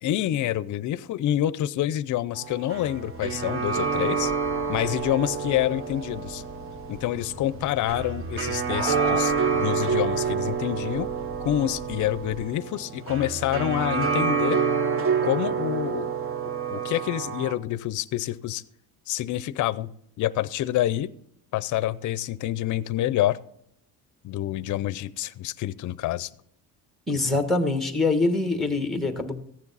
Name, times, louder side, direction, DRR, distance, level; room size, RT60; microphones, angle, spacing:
voice 1, 0.0-4.3 4.7-6.4 6.9-11.1 11.4-14.6 15.2-16.1 16.4-18.6 19.1-19.9 20.2-21.1 21.5-23.4 24.2-26.3, left 13 dB, 55° left, 18 dB, 0.6 m, -27 dB
sound 1, 2.4-17.6, right 5 dB, 35° right, 0.8 m, -28 dB
sound 2, 3.1-12.4, left 2 dB, 60° right, 5.8 m, -44 dB
sound 3, 8.7-9.2, right 3 dB, 75° right, 2.5 m, -32 dB
voice 2, 27.1-29.3, left 3 dB, ahead, 7 dB, 1.3 m, -24 dB
15.0 x 9.8 x 4.1 m, 0.70 s
cardioid pair, 165°, 36 cm